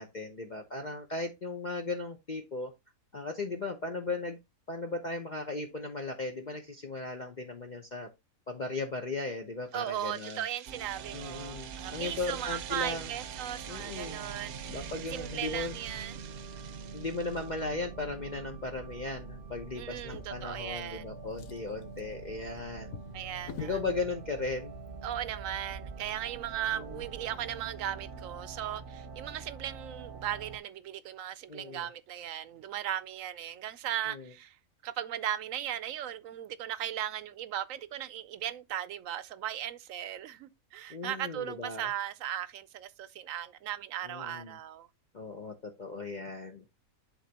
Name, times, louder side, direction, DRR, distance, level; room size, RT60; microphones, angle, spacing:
voice 1, 0.0-2.7 3.1-4.4 4.7-8.1 8.5-10.4 11.1-13.1 13.7-14.2 14.7-15.8 16.9-22.9 23.6-24.7 26.7-27.0 31.5-31.9 34.1-34.3 40.9-41.9 44.0-44.6 45.1-46.7, left 3 dB, 40° left, 0.8 m, -37 dB
voice 2, 9.7-14.5 15.1-16.2 19.7-21.1 23.1-23.8 25.0-34.6 34.8-44.9, right 11 dB, 70° right, 0.9 m, -37 dB
sound 1, 9.7-17.6, right 10 dB, 90° right, 1.2 m, -47 dB
sound 2, 10.7-30.6, right 5 dB, 45° right, 0.9 m, -45 dB
Drawer open or close, 19.9-20.9 21.2-23.9 24.7-24.9 25.3-25.4, left 6 dB, 75° left, 1.3 m, -47 dB
11.0 x 3.9 x 2.9 m
omnidirectional pair, 1.5 m